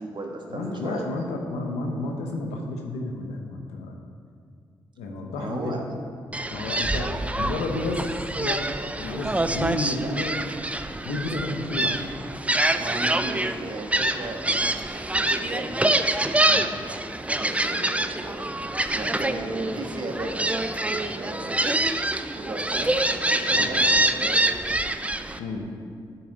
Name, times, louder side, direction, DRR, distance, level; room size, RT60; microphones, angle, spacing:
voice 1, 0.0-1.1 5.4-5.8 9.8-10.1 12.8-16.0 17.2-18.5 18.9-20.3 20.8-21.6 22.3-24.7, right 2 dB, 45° right, 1 dB, 1.3 m, -35 dB
voice 2, 0.5-3.9 5.0-5.8 6.5-8.1 8.4-8.7 9.0-10.4 11.0-12.1 16.5-16.7 23.5-23.7 25.4-25.7, left 2 dB, 90° left, 2 dB, 0.8 m, -31 dB
Gull seagull, 6.3-25.4, right 1 dB, 10° right, 0.5 m, -26 dB
9.8 x 4.3 x 5.3 m, 2.2 s
hypercardioid pair, 40°, 11 cm